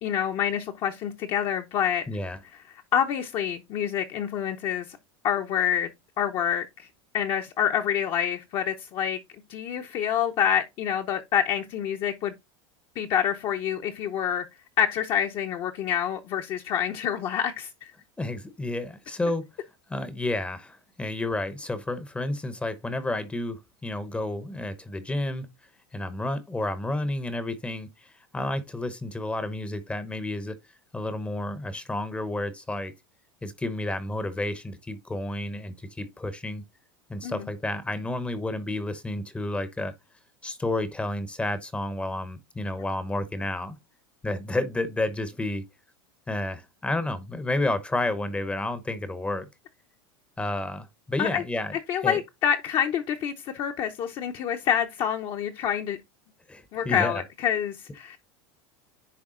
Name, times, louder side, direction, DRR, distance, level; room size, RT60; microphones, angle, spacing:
voice 1, 0.0-2.0 2.9-4.9 5.2-5.9 6.2-6.9 7.1-9.2 9.5-12.3 13.0-14.4 14.8-17.9 37.2-37.5 51.2-51.4 51.9-56.0 56.7-58.2, left 9 dB, 40° left, 0.8 m, -27 dB
voice 2, 2.1-2.4 18.2-19.4 19.9-25.5 25.9-30.6 30.9-32.9 33.4-36.6 37.1-39.9 40.4-43.8 44.2-45.6 46.3-49.5 50.4-51.8 52.0-52.2 56.5-57.2, left 2 dB, 10° left, 0.8 m, -31 dB
10.0 x 3.5 x 3.7 m
supercardioid pair, 145°, 13 cm